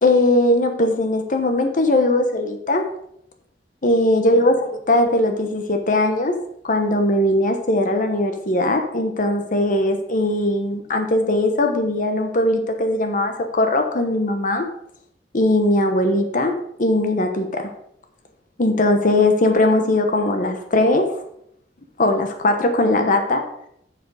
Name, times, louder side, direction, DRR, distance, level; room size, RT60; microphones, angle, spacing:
voice 1, 0.0-2.9 3.8-4.6 4.9-6.3 6.6-14.6 15.3-16.5 16.8-17.7 18.6-21.1 22.0-23.4, left 1 dB, 45° left, 5 dB, 1.0 m, -19 dB
7.6 x 6.9 x 4.8 m, 0.72 s
head